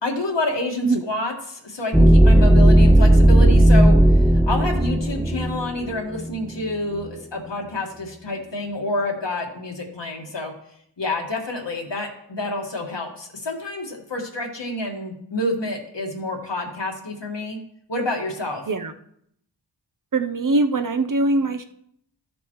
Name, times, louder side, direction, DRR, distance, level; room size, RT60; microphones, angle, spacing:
voice 1, 0.0-10.5 11.0-17.6 17.9-18.6, left 1 dB, 70° left, 1 dB, 1.8 m, -28 dB
sound 1, 1.9-6.5, right 1 dB, 5° right, 0.5 m, -14 dB
voice 2, 20.1-21.6, right 2 dB, 45° right, 8 dB, 0.8 m, -21 dB
13.5 x 7.0 x 3.1 m, 0.71 s
wide cardioid pair, 55°, 45 cm